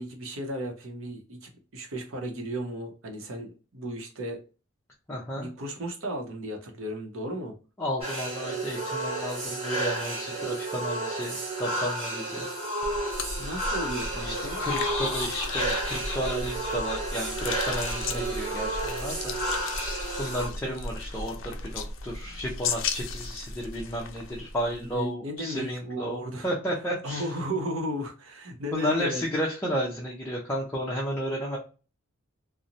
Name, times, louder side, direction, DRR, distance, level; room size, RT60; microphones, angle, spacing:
voice 1, 0.0-4.4 5.3-7.6 13.4-14.6 24.8-26.5 27.0-29.2, equal, 75° right, 0.7 m, -35 dB
voice 2, 5.1-5.5 7.8-12.5 14.2-19.3 20.2-27.3 28.7-31.6, equal, 10° left, 0.5 m, -32 dB
sound 1, 8.0-20.5, right 2 dB, 30° right, 1.3 m, -32 dB
sound 2, 12.8-25.0, left 4 dB, 60° left, 0.4 m, -36 dB
Laughter, 14.0-19.2, left 2 dB, 30° left, 1.0 m, -37 dB
2.9 x 2.0 x 2.4 m
head